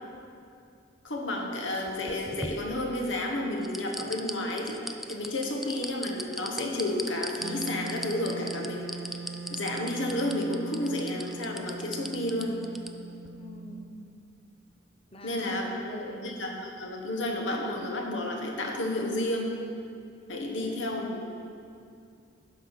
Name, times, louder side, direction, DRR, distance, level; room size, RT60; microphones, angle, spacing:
voice 1, 1.0-8.9 9.5-12.6 15.2-15.7 16.1-19.6 20.3-21.4, left 1 dB, 90° left, 1 dB, 1.3 m, -31 dB
sound 1, 1.9-3.2 3.6-12.9 13.2-13.3, equal, ahead, 0.3 m, -38 dB
Wind instrument woodwind instrument, 7.4-14.4, right 4 dB, 80° right, 0.5 m, -41 dB
voice 2, 13.4-14.0 15.1-16.3 20.4-21.0, equal, 30° left, 3 dB, 0.8 m, -44 dB
11.5 x 4.9 x 5.7 m, 2.5 s
head